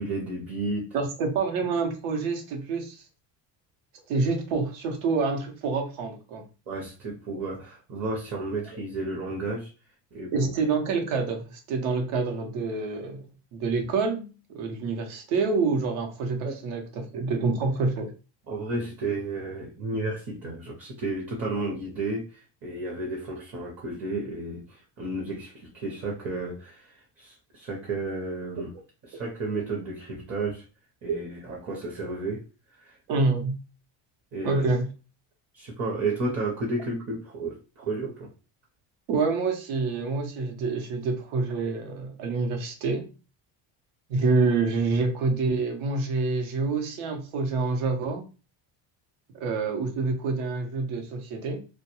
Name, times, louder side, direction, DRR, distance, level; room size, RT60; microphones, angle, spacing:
voice 1, 0.0-0.9 6.7-9.7 10.1-10.5 16.4-16.6 18.5-28.7 29.0-30.6 31.0-32.4 32.8-33.0 34.3-34.6 35.5-38.3, right 2 dB, 30° right, -2 dB, 0.6 m, -32 dB
voice 2, 0.9-3.0 4.1-6.4 10.3-13.2 13.5-18.1 31.1-31.2 33.1-33.6 34.4-34.9 39.1-43.1 44.1-48.2 49.4-51.6, right 4 dB, 80° right, 3 dB, 0.9 m, -27 dB
2.3 x 2.2 x 2.9 m, 0.33 s
cardioid pair, 130°, 46 cm